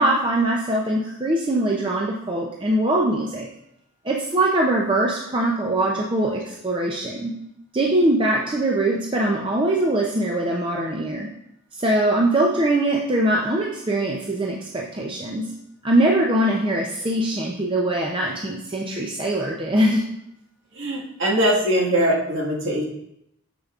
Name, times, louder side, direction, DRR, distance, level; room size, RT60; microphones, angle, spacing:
voice 1, 0.0-3.5 4.0-7.3 7.7-11.3 11.8-15.4 15.8-20.0, right 1 dB, 25° right, -1 dB, 0.5 m, -22 dB
voice 2, 20.7-22.8, right 1 dB, 55° right, -4 dB, 1.7 m, -21 dB
6.8 x 6.7 x 2.4 m, 0.80 s
head